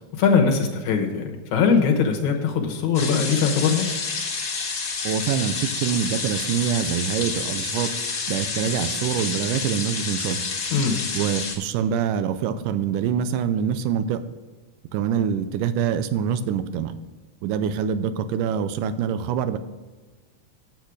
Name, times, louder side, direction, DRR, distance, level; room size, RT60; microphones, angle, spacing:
voice 1, 0.1-3.9 10.7-11.0, left 5 dB, 70° left, 3 dB, 2.3 m, -21 dB
sound 1, 2.9-11.5, left 4 dB, 45° left, 2.0 m, -29 dB
voice 2, 5.0-7.9 8.3-10.4 11.1-14.2 14.9-17.0 17.4-19.6, right 8 dB, 80° right, 11 dB, 2.2 m, -25 dB
8.6 x 8.2 x 4.8 m, 1.3 s
omnidirectional pair, 3.8 m